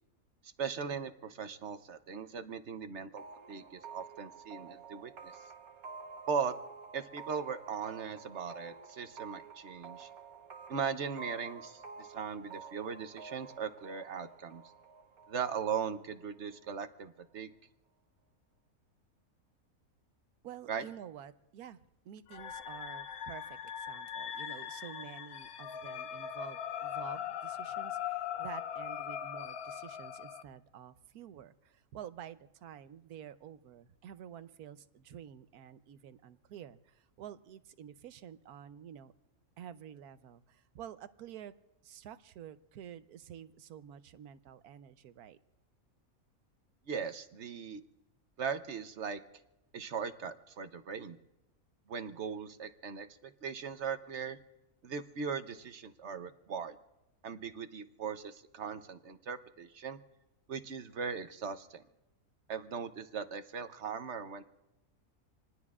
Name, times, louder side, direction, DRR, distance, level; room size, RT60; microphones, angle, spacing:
voice 1, 0.6-3.2 3.5-5.3 6.3-6.5 6.9-10.1 10.7-14.6 15.3-17.5 20.7-20.8 46.9-47.8 48.4-49.2 49.7-51.2 51.9-54.4 54.8-56.8 57.2-60.0 60.5-61.8 62.5-64.4, right 6 dB, 55° right, 10 dB, 1.0 m, -39 dB
sound 1, 3.2-16.7, right 5 dB, 70° right, 1.6 m, -50 dB
voice 2, 20.4-39.1 39.6-41.5 41.8-45.4, right 9 dB, 85° right, 12 dB, 1.2 m, -49 dB
sound 2, 22.3-30.4, left 9 dB, 80° left, 1.2 m, -40 dB
28.0 x 19.5 x 2.4 m, 0.96 s
omnidirectional pair, 1.5 m